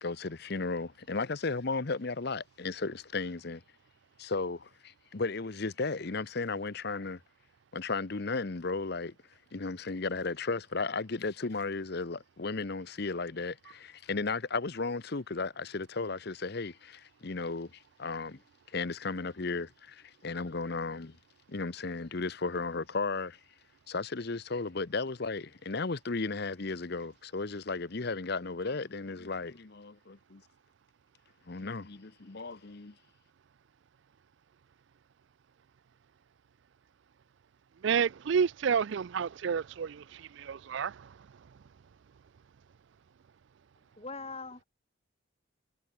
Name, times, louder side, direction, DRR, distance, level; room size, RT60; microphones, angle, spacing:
voice 1, 0.0-3.6 4.2-7.2 7.7-9.1 9.5-18.4 18.7-21.2 21.5-23.4 23.9-30.4 31.5-32.9, left 3 dB, 50° left, 0.8 m, -35 dB
voice 2, 37.8-40.9, right 6 dB, 60° right, 0.4 m, -30 dB
voice 3, 44.0-44.6, left 3 dB, 30° left, 4.8 m, -41 dB
head